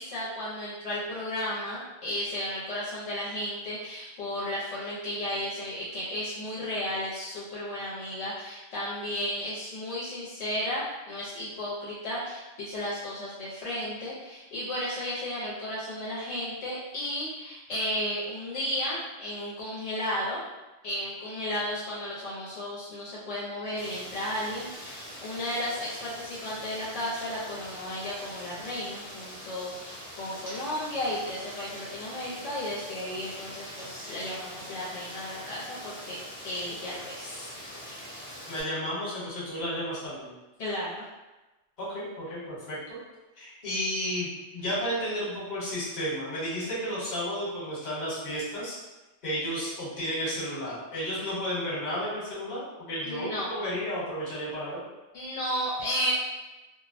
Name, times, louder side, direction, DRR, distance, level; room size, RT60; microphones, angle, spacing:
voice 1, 0.0-20.4 20.8-36.2 36.4-37.5 40.6-41.1 53.0-53.6 55.1-56.1, left 1 dB, 70° left, -8 dB, 0.8 m, -34 dB
Rain, 23.8-38.6, equal, 15° right, 0.5 m, -43 dB
voice 2, 38.5-40.3 41.8-43.0 43.4-48.8 49.2-54.8, equal, 40° left, -8 dB, 1.0 m, -32 dB
2.5 x 2.0 x 2.5 m, 1.1 s
omnidirectional pair, 1.3 m